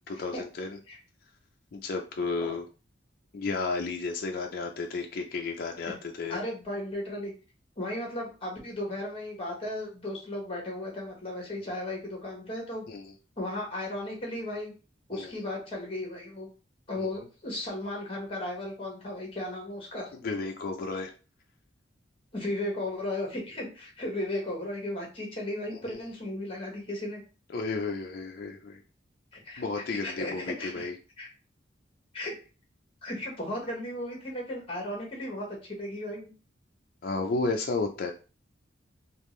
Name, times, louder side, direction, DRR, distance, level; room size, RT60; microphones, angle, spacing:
voice 1, 0.1-0.8 1.7-2.7 3.3-6.4 12.9-13.1 15.1-15.3 17.0-17.1 20.1-21.1 25.7-26.0 27.5-28.8 29.6-30.9 37.0-38.1, left 3 dB, 50° left, 2 dB, 0.4 m, -33 dB
voice 2, 6.3-7.3 7.8-12.8 13.4-14.7 15.1-16.5 16.9-20.1 22.3-27.2 29.3-29.6 29.9-30.9 31.2-31.3 32.1-32.3 33.0-36.3, left 1 dB, 30° left, 0 dB, 1.2 m, -35 dB
3.5 x 2.4 x 3.1 m, 0.34 s
head